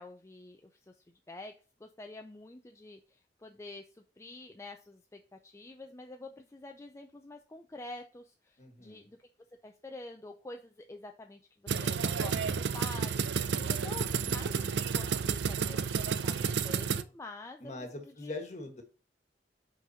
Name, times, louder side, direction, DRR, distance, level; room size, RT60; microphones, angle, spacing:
voice 1, 0.0-1.5 1.8-9.2 9.6-11.4 11.8-18.4, left 2 dB, 15° left, 4 dB, 0.4 m, -48 dB
voice 2, 8.6-9.1 13.6-14.6 17.6-18.8, left 2 dB, 40° left, 5 dB, 1.4 m, -44 dB
sound 1, 11.7-17.0, right 6 dB, 75° right, 0.4 m, -31 dB
5.5 x 3.9 x 5.5 m, 0.36 s
head